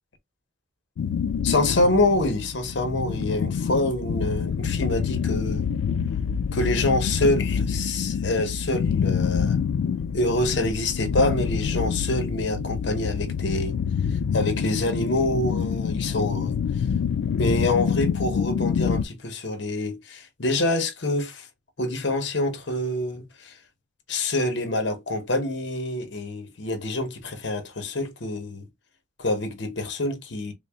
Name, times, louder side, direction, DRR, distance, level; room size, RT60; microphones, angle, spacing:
sound 1, 1.0-19.1, left 7 dB, 80° left, 0.3 m, -27 dB
voice 1, 1.4-5.7 6.5-9.6 10.1-13.8 14.3-16.6 17.4-21.5 21.8-23.6 24.1-28.7 29.2-30.5, left 2 dB, 60° left, 0.8 m, -26 dB
3.8 x 2.1 x 3.4 m
head